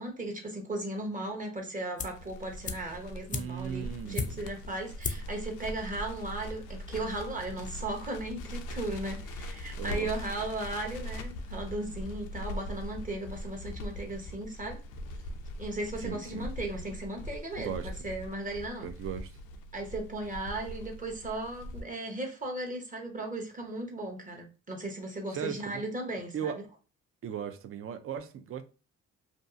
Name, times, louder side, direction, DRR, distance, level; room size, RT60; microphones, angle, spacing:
voice 1, 0.0-14.8 15.6-18.9 19.7-26.6, right 2 dB, 25° right, 0.8 m, -36 dB
Crackle, 2.0-21.8, equal, 85° left, 0.5 m, -41 dB
sound 1, 2.0-2.3 2.6-4.6 5.0-5.4 5.7-5.8, left 5 dB, 25° left, 0.3 m, -36 dB
voice 2, 3.3-4.4 9.7-10.1 16.0-16.5 17.6-17.9 18.8-19.4 25.3-25.8 26.3-26.6 27.2-28.6, right 8 dB, 50° right, 0.4 m, -37 dB
2.6 x 2.3 x 2.4 m
cardioid pair, 90°, 30 cm